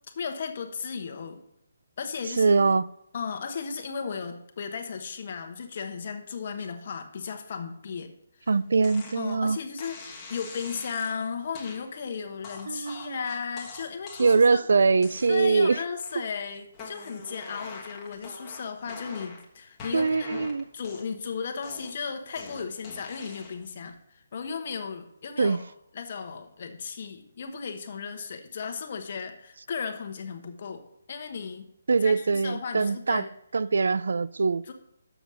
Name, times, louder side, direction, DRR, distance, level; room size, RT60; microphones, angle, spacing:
voice 1, 0.2-1.4 2.0-2.7 3.1-8.1 8.4-8.5 9.1-10.0 10.3-14.6 15.3-20.4 20.7-25.6 25.9-31.7 32.0-33.3 34.7-34.8, left 6 dB, 45° left, 1.1 m, -35 dB
voice 2, 2.4-2.9 8.5-9.6 12.7-13.2 14.2-15.8 19.9-20.6 25.4-25.6 31.9-33.2 33.5-34.6, right 4 dB, 75° right, 0.3 m, -23 dB
sound 1, 8.8-9.2 9.8-11.1 11.5-11.8 12.4-14.6 15.0-15.6 16.0-16.4 16.7-19.5 19.8-21.3 21.6-23.7, left 3 dB, 15° left, 1.4 m, -44 dB
7.0 x 6.1 x 6.1 m
hypercardioid pair, 160°, 0 cm